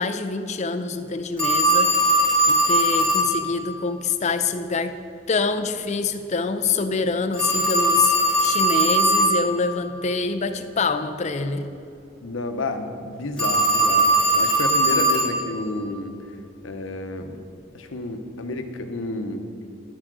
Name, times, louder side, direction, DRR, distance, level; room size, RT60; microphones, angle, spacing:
voice 1, 0.0-1.9 2.5-5.0 5.3-8.1 8.4-11.7, left 4 dB, 35° left, 9 dB, 0.5 m, -25 dB
Telephone, 1.4-3.4 7.3-9.4 13.4-15.4, right 1 dB, 5° left, 2.0 m, -19 dB
voice 2, 12.2-16.1 16.6-17.4 17.7-19.4, left 2 dB, 85° left, 6 dB, 0.8 m, -30 dB
12.0 x 4.9 x 6.1 m, 2.6 s
head